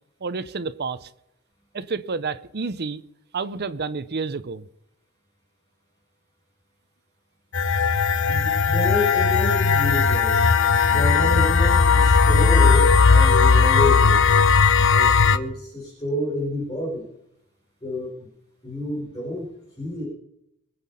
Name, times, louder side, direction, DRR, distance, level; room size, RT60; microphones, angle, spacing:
voice 1, 0.2-1.1 1.7-3.0 3.3-4.7, right 4 dB, 50° right, 0.8 m, -29 dB
sound 1, 7.5-15.4, left 5 dB, 60° left, 0.8 m, -17 dB
voice 2, 8.3-10.5 10.9-14.5 14.9-17.1 17.8-18.3 18.6-19.5 19.8-20.1, left 2 dB, 20° left, 5.2 m, -29 dB
23.0 x 8.4 x 5.7 m
head